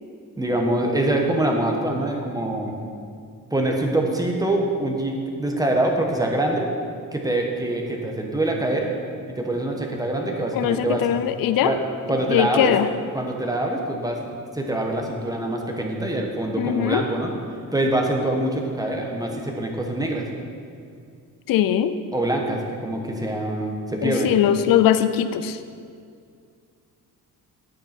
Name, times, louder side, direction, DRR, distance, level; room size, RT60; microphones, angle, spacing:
voice 1, 0.4-2.7 3.5-6.7 7.1-8.9 9.4-11.0 11.6-11.8 12.1-12.7 13.1-14.3 14.5-17.3 17.7-20.3 22.1-24.3, right 1 dB, 10° right, 1 dB, 1.2 m, -24 dB
voice 2, 10.5-11.7 12.1-12.9 16.5-17.0 21.5-21.9 24.0-25.6, left 11 dB, 80° left, 11 dB, 0.6 m, -21 dB
11.0 x 9.1 x 4.4 m, 2.3 s
cardioid pair, 130°, 34 cm